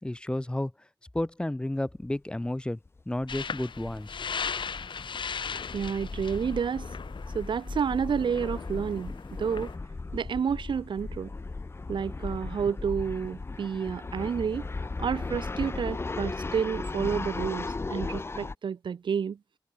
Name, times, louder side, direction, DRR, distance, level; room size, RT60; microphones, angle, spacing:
voice 1, 0.0-0.7 1.1-2.8 3.1-4.3, left 1 dB, 10° left, 3.5 m, -31 dB
sound 1, 2.0-2.2 2.4-2.5 2.9-18.5, left 3 dB, 30° left, 1.9 m, -37 dB
sound 2, 3.3-9.8, left 6 dB, 80° left, 4.5 m, -38 dB
voice 2, 5.7-6.9 7.3-9.7 10.1-11.3 11.9-14.7 15.0-19.4, right 7 dB, 80° right, 0.9 m, -30 dB
wide cardioid pair, 150°, 8 cm